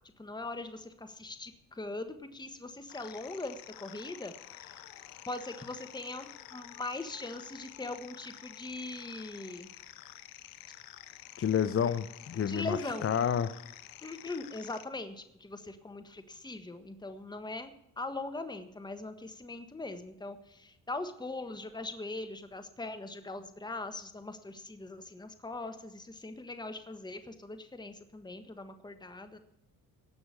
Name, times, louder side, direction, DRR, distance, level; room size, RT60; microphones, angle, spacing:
voice 1, 0.2-4.8 5.3-9.7 12.4-13.1 14.0-29.4, left 2 dB, 10° left, 9 dB, 1.4 m, -41 dB
sound 1, 2.9-14.9, left 13 dB, 85° left, 0.9 m, -50 dB
voice 2, 11.4-13.5, left 8 dB, 40° left, 12 dB, 0.8 m, -29 dB
18.0 x 6.2 x 8.3 m, 0.80 s
supercardioid pair, 75°, 34 cm